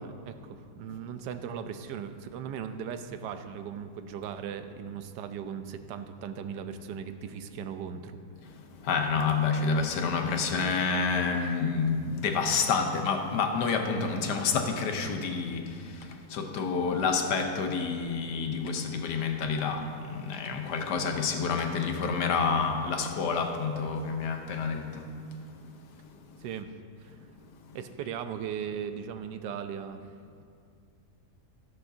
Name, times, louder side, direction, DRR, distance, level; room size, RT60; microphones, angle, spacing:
voice 1, 0.0-8.2 11.4-11.5 26.4-26.7 27.0-27.2 27.7-30.0, right 7 dB, 90° right, 9 dB, 1.2 m, -38 dB
voice 2, 8.8-15.7 16.3-19.8 20.1-25.0, left 5 dB, 80° left, 5 dB, 1.4 m, -28 dB
13.0 x 11.0 x 2.7 m, 2.3 s
omnidirectional pair, 1.8 m